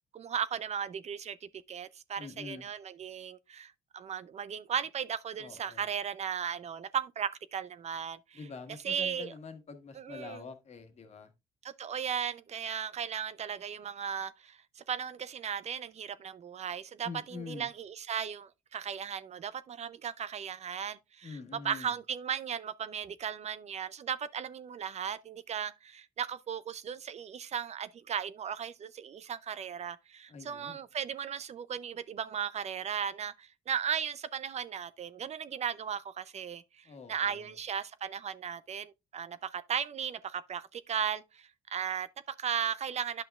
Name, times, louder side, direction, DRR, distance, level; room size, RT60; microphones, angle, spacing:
voice 1, 0.1-8.4 8.8-9.3 10.0-10.4 11.6-43.2, right 8 dB, 45° right, 0.5 m, -36 dB
voice 2, 2.2-2.6 5.4-5.9 8.3-11.3 17.0-17.7 21.2-21.9 30.3-30.8 36.8-37.5, left 4 dB, 45° left, 1.5 m, -45 dB
10.5 x 5.8 x 2.3 m
cardioid pair, 75°, 15 cm